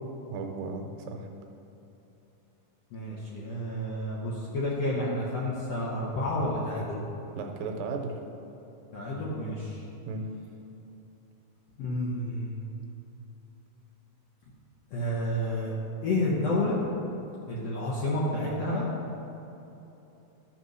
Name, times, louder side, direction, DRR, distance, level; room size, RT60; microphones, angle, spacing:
voice 1, 0.3-1.3 7.3-8.2 10.1-10.3, right 4 dB, 80° right, 3 dB, 2.4 m, -35 dB
voice 2, 2.9-7.0 8.9-9.8 11.8-12.6 14.9-15.8 16.0-16.8 17.5-18.8, left 1 dB, 65° left, -5 dB, 1.7 m, -30 dB
12.0 x 4.1 x 6.3 m, 3.0 s
omnidirectional pair, 4.1 m